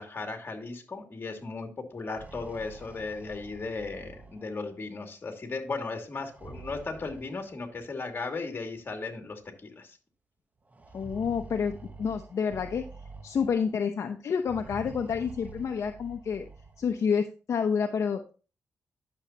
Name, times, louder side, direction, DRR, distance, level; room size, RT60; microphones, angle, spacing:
voice 1, 0.0-10.0, left 3 dB, 40° left, 3 dB, 2.5 m, -36 dB
sound 1, 1.9-4.8 6.2-7.9 8.9-9.0 9.3-9.4 10.7-13.8 14.4-17.0, right 3 dB, 30° right, 1.1 m, -47 dB
voice 2, 10.9-12.8 13.2-16.5 16.8-18.3, left 6 dB, 65° left, 4 dB, 0.8 m, -29 dB
10.5 x 6.9 x 2.9 m, 0.35 s
cardioid pair, 80°, 5 cm